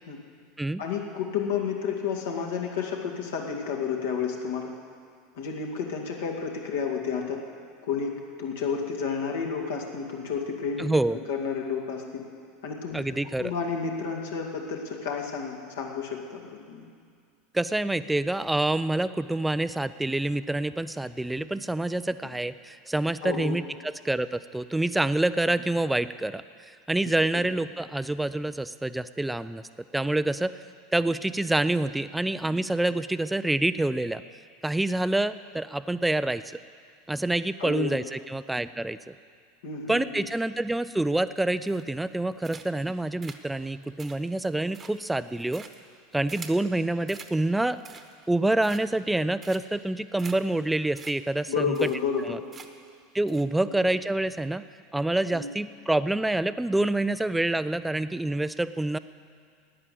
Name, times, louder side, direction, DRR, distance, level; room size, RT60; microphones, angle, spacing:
voice 1, 0.8-4.7 5.4-7.4 7.8-12.2 12.6-16.8 23.2-23.6 37.6-38.0 39.6-40.2 51.5-52.4 53.6-54.0 55.3-55.5, left 6 dB, 65° left, 0 dB, 2.1 m, -31 dB
voice 2, 10.8-11.2 12.9-13.5 17.5-26.4 26.9-29.6 29.9-30.6 30.9-34.2 34.6-36.4 37.1-39.1 39.9-45.6 46.1-47.8 48.3-51.9 52.2-52.4 53.1-54.6 54.9-59.0, right 2 dB, 5° right, 14 dB, 0.5 m, -27 dB
sound 1, 41.7-42.1 42.4-42.9 43.2-46.7 47.1-47.3 47.7-48.3 48.6-49.1 49.4-49.8 50.2-50.4 50.6-50.7 51.0-51.1 51.4-51.5 51.7-52.2 52.5-52.9 53.3-53.4, right 5 dB, 25° right, 1.2 m, -46 dB
12.5 x 9.8 x 8.4 m, 2.2 s
figure-of-eight pair, 80°, 0 cm